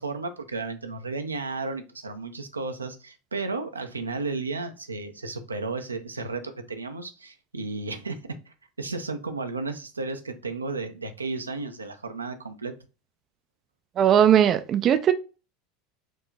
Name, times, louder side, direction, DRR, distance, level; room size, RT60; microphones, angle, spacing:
voice 1, 0.0-8.2 8.5-12.7, right 3 dB, 85° right, 0.6 m, -33 dB
voice 2, 14.0-15.1, right 9 dB, 40° right, 0.4 m, -19 dB
4.5 x 2.9 x 3.9 m
figure-of-eight pair, 80°, 0 cm